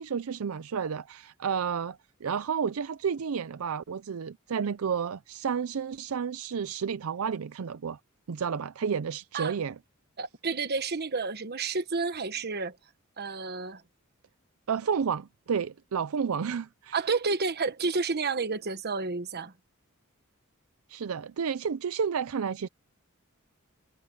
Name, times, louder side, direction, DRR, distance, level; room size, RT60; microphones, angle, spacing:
voice 1, 0.0-8.0 8.3-9.8 14.7-17.0 20.9-22.7, right 6 dB, 75° right, 0.5 m, -31 dB
voice 2, 10.2-12.8 13.2-13.8 16.9-19.5, right 4 dB, 50° right, 1.2 m, -30 dB
head